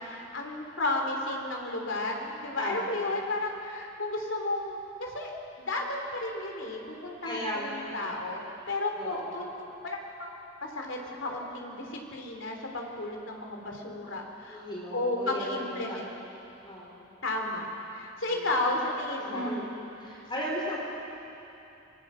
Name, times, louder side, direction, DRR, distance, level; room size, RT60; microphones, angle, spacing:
voice 1, 0.0-5.3 5.6-10.3 10.6-14.6 14.9-16.1 17.2-19.5, left 2 dB, 70° left, 1 dB, 3.4 m, -33 dB
voice 2, 2.6-3.2 7.2-8.1 8.9-9.3 14.5-16.2 16.6-17.1 18.3-18.5 19.2-19.7 20.0-20.8, equal, 25° left, -3 dB, 4.0 m, -36 dB
26.0 x 21.0 x 6.4 m, 2.9 s
head